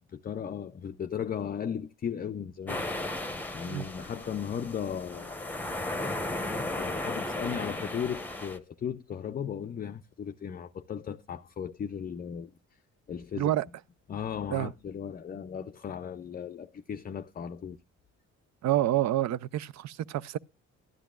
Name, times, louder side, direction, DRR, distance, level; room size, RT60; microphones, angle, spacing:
voice 1, 0.0-3.1 3.5-5.6 6.5-12.5 13.1-13.5 14.1-17.8, left 8 dB, 30° left, 0.4 m, -36 dB
sound 1, 2.7-8.6, left 2 dB, 5° left, 0.9 m, -35 dB
voice 2, 18.6-20.4, right 13 dB, 65° right, 0.4 m, -28 dB
12.5 x 10.0 x 2.3 m
cardioid pair, 90°, 30 cm